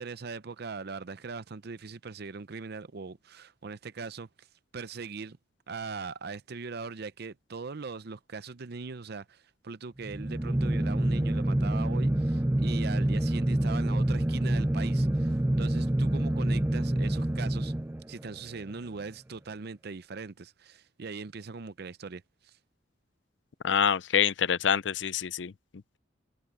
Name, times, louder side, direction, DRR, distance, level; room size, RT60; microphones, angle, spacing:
voice 1, 0.0-4.5 4.7-5.4 5.7-17.7 18.1-22.5, right 4 dB, 60° right, 0.6 m, -40 dB
sound 1, 10.0-18.4, right 1 dB, 10° right, 0.4 m, -27 dB
voice 2, 23.6-25.5, left 8 dB, 70° left, 0.5 m, -26 dB
head